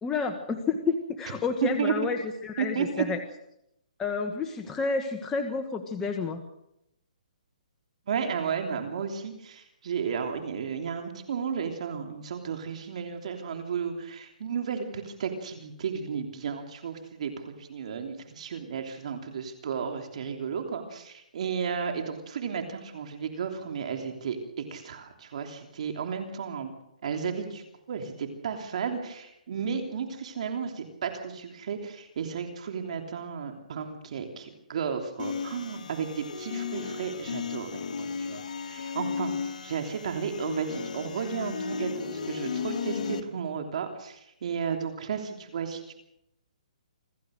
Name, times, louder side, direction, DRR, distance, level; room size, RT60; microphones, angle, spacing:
voice 1, 0.0-3.2 4.0-6.4, left 4 dB, 10° left, 4 dB, 1.4 m, -30 dB
voice 2, 1.6-1.9 2.6-3.0 8.1-26.7 27.0-37.8 38.2-38.4 38.7-45.9, right 6 dB, 55° right, 4 dB, 3.2 m, -33 dB
sound 1, 35.2-43.2, left 5 dB, 65° left, 2.6 m, -35 dB
26.0 x 15.5 x 6.6 m, 0.81 s
hypercardioid pair, 155°, 4 cm